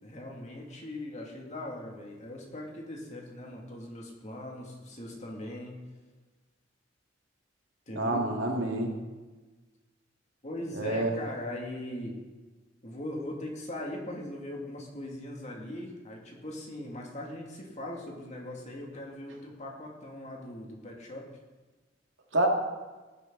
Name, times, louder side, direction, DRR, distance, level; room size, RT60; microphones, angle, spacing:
voice 1, 0.0-5.8 7.9-8.2 10.4-12.2 12.8-21.3, left 1 dB, 40° left, -1 dB, 2.5 m, -40 dB
voice 2, 7.9-9.0 10.7-11.1 22.3-22.5, right 1 dB, 75° right, 1 dB, 2.3 m, -28 dB
18.0 x 10.0 x 4.0 m, 1.3 s
head